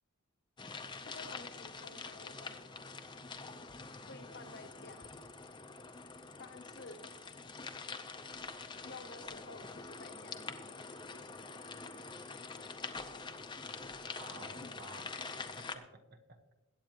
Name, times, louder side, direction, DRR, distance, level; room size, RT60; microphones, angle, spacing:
sound 1, 0.6-15.7, left 4 dB, 20° left, 0.7 m, -46 dB
voice 1, 1.0-2.8 4.1-5.1 6.4-7.0 8.8-10.4 14.6-14.7 15.1-15.3, left 3 dB, 50° left, 7 dB, 1.0 m, -52 dB
voice 2, 14.2-15.1 15.6-16.5, right 3 dB, 45° right, 6 dB, 1.0 m, -53 dB
22.0 x 8.8 x 3.0 m, 1.1 s
head